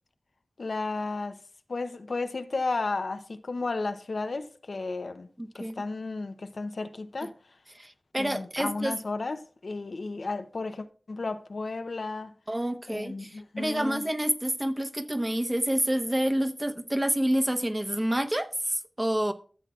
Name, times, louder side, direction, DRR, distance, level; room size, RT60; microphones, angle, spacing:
voice 1, 0.6-1.4 1.7-5.3 5.5-7.3 8.1-12.3 12.9-14.1, left 3 dB, 80° left, 0.6 m, -33 dB
voice 2, 5.4-5.7 7.8-8.9 12.5-19.3, right 1 dB, 20° right, 0.9 m, -28 dB
13.5 x 7.3 x 2.4 m
wide cardioid pair, 50°, 0 cm